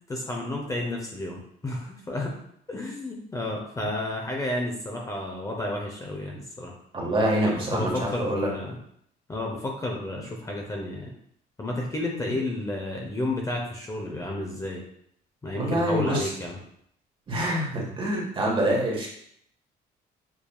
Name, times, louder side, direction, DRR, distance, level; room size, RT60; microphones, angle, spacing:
voice 1, 0.1-2.4 2.7-6.7 7.4-8.8 9.3-11.1 11.6-14.8 15.4-16.6, left 1 dB, 20° left, 0 dB, 0.7 m, -31 dB
voice 2, 6.9-8.5 12.2-12.3 15.5-16.3 17.3-19.1, right 1 dB, 30° right, -2 dB, 1.5 m, -26 dB
7.1 x 2.7 x 2.3 m, 0.69 s
cardioid pair, 110°, 17 cm